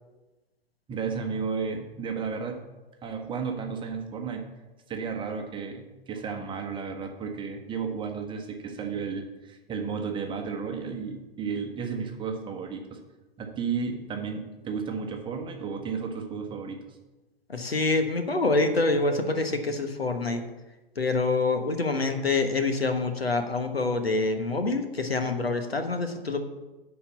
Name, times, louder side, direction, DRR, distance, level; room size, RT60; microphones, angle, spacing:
voice 1, 0.9-2.7 3.0-4.5 4.9-13.0 13.4-17.0, right 5 dB, 15° right, 3 dB, 1.1 m, -33 dB
voice 2, 17.5-20.4 21.0-26.4, left 3 dB, 85° left, 6 dB, 1.3 m, -26 dB
11.0 x 4.3 x 7.0 m, 1.1 s
figure-of-eight pair, 110°, 29 cm